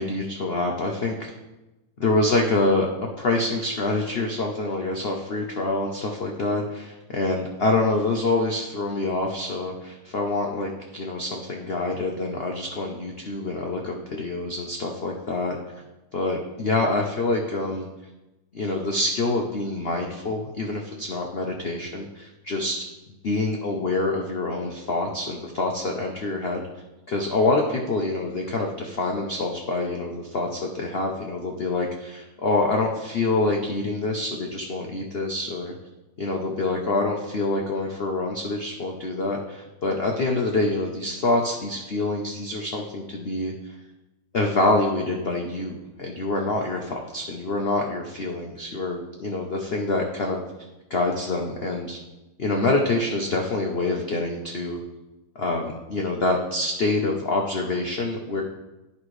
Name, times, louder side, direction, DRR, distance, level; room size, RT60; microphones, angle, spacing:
voice 1, 0.0-1.3 2.0-2.9 3.2-15.8 16.1-17.9 18.5-22.8 23.2-26.6 27.1-35.7 36.2-43.7 44.3-50.4 50.9-52.0 52.4-54.8 55.4-58.4, left 2 dB, 70° left, 1 dB, 0.5 m, -26 dB
11.0 x 5.5 x 3.2 m, 1.0 s
omnidirectional pair, 2.1 m